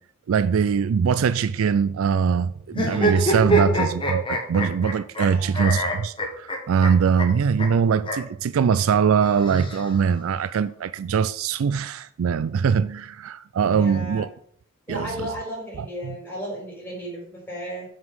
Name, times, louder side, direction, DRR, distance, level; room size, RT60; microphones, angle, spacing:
voice 1, 0.3-14.3 14.9-15.1 15.8-16.2, right 6 dB, 80° right, 0.4 m, -22 dB
sound 1, 2.7-5.3 5.5-6.9 7.2-7.3 7.6-7.7 8.0-8.2 9.2-10.2, right 1 dB, 25° left, 1.6 m, -25 dB
voice 2, 3.4-3.7 5.2-5.6 13.7-14.2 14.9-17.8, equal, 10° left, 4.7 m, -35 dB
7.3 x 6.1 x 6.2 m
head